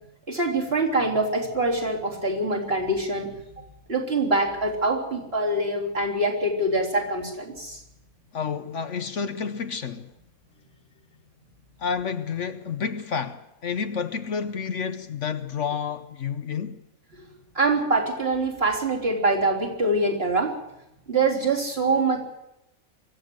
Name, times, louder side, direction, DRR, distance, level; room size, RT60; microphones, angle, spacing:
voice 1, 0.3-7.8 17.2-17.3 17.5-20.6 21.1-22.2, right 2 dB, 45° right, 3.9 m, -24 dB
voice 2, 8.3-10.1 11.8-16.8, left 6 dB, 60° left, 1.2 m, -30 dB
24.0 x 15.0 x 7.9 m
omnidirectional pair, 1.5 m